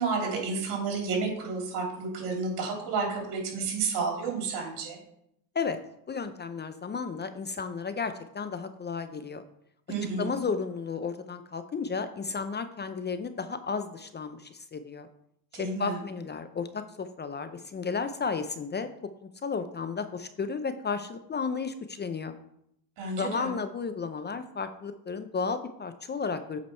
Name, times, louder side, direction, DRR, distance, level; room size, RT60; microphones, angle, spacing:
voice 1, 0.0-5.0 9.9-10.3 15.5-16.0 23.0-23.5, right 4 dB, 65° right, 0 dB, 3.3 m, -31 dB
voice 2, 6.1-9.4 10.2-15.1 15.5-18.9 19.2-22.3 23.2-26.6, left 5 dB, 25° left, 10 dB, 0.6 m, -33 dB
8.3 x 5.1 x 4.4 m, 0.75 s
supercardioid pair, 95°, 42 cm